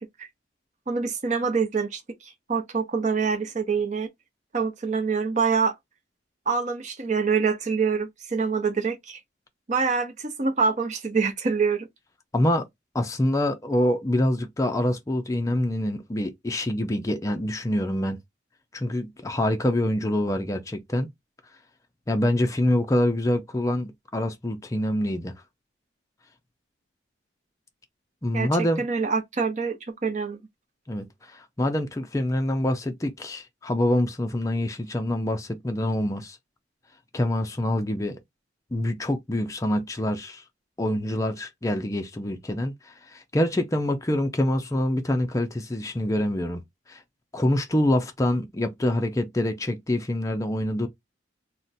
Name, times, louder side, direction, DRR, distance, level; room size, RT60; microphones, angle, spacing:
voice 1, 0.9-4.1 4.5-5.8 6.5-9.2 9.7-11.9 28.3-28.5 28.8-30.4, right 5 dB, 40° right, 0.6 m, -25 dB
voice 2, 12.3-12.7 12.9-18.2 18.7-21.1 22.1-25.3 28.2-28.9 30.9-36.4 37.1-38.2 38.7-40.4 40.8-46.6 46.9-47.0 47.3-50.9, left 1 dB, 15° left, 0.4 m, -25 dB
2.5 x 2.1 x 3.9 m
head